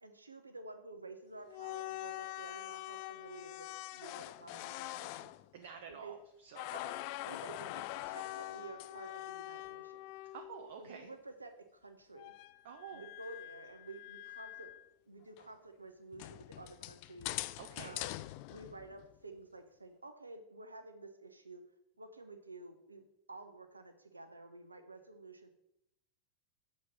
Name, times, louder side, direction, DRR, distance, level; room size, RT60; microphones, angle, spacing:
voice 1, 0.0-5.3 6.0-6.1 6.7-6.9 7.2-10.1 10.8-12.3 12.9-14.7 15.0-17.3 17.8-18.1 18.5-21.6 22.0-25.5, right 2 dB, 80° right, 7 dB, 1.0 m, -51 dB
sound 1, 1.4-6.2 6.5-10.8 12.2-14.8 15.4-15.5 16.1-19.1, left 18 dB, 45° left, 0.3 m, -44 dB
voice 2, 5.5-6.7 10.3-11.1 12.6-13.0 17.6-18.0, right 7 dB, 55° right, 4 dB, 0.9 m, -49 dB
7.6 x 4.5 x 7.1 m, 0.79 s
figure-of-eight pair, 90°, 0 cm